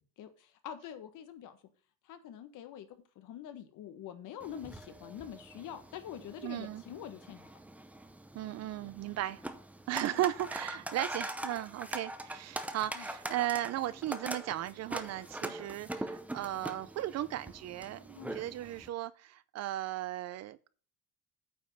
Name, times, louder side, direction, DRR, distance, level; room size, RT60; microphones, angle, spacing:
voice 1, 0.2-1.6 2.0-2.9 3.1-7.5 10.1-10.3 12.9-13.1 18.1-18.4, left 10 dB, 60° left, 1.5 m, -45 dB
sound 1, 4.4-18.9, right 1 dB, 5° right, 0.6 m, -43 dB
voice 2, 6.4-6.8 8.3-9.4 9.9-20.7, right 14 dB, 50° right, 0.5 m, -36 dB
8.9 x 5.3 x 5.6 m
cardioid pair, 175°, 35 cm